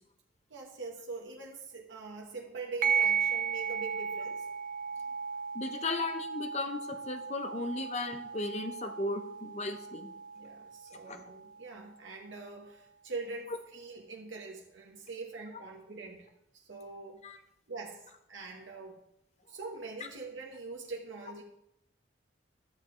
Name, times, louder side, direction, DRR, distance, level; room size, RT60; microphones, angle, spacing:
voice 1, 0.5-4.4 10.3-16.3 16.6-17.2 17.7-19.0 19.5-21.4, right 3 dB, 85° right, 0 dB, 1.3 m, -43 dB
sound 1, 2.8-11.8, right 6 dB, 45° right, 0.5 m, -35 dB
voice 2, 5.5-10.1 11.1-11.2 17.2-17.4, left 2 dB, 35° left, 7 dB, 0.8 m, -36 dB
12.0 x 7.0 x 3.8 m, 0.82 s
head